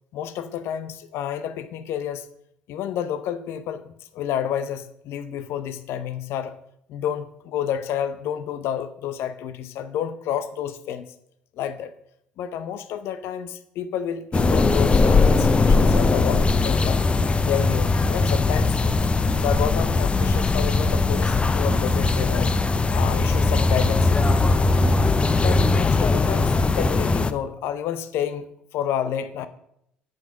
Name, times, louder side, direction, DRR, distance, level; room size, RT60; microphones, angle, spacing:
voice 1, 0.1-2.3 2.7-3.9 4.1-6.6 6.9-11.1 11.6-11.9 12.4-17.0 17.4-19.1 19.4-22.5 22.9-24.7 25.4-28.5 28.7-29.5, left 9 dB, 60° left, 12 dB, 0.7 m, -30 dB
sound 1, 14.3-27.3, left 3 dB, 25° left, 0.7 m, -20 dB
9.1 x 5.3 x 6.4 m, 0.73 s
hypercardioid pair, 60°, 5 cm